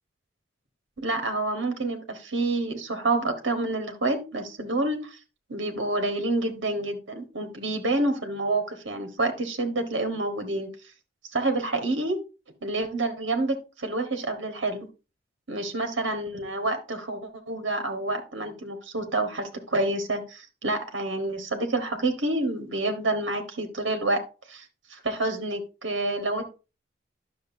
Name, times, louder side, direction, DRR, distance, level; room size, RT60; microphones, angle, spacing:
voice 1, 1.0-5.2 5.5-10.7 11.3-12.2 12.6-14.9 15.5-24.2 24.5-24.6 24.9-26.4, right 2 dB, 80° right, 6 dB, 1.3 m, -28 dB
10.0 x 6.5 x 2.6 m, 0.31 s
head